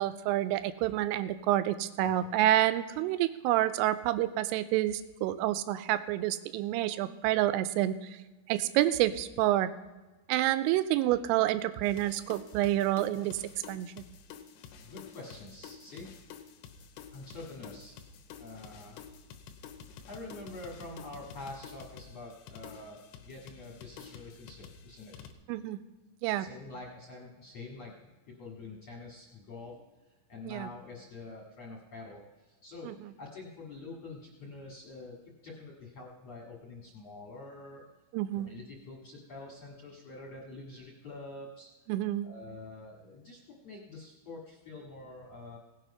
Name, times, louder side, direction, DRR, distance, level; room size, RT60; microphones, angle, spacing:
voice 1, 0.0-8.1 8.5-9.7 10.3-13.9 25.5-25.8 26.2-26.5 30.5-30.7 32.8-33.1 38.1-38.5 41.9-42.3, right 14 dB, 90° right, 13 dB, 3.2 m, -28 dB
sound 1, 11.8-25.3, left 7 dB, 75° left, 2.7 m, -50 dB
voice 2, 14.8-16.3 17.1-18.0 18.3-19.0 20.1-25.1 26.4-29.9 30.3-35.2 35.4-37.8 38.3-41.7 42.2-45.6, left 2 dB, 55° left, -2 dB, 1.9 m, -46 dB
17.0 x 7.7 x 5.6 m, 1.2 s
omnidirectional pair, 5.7 m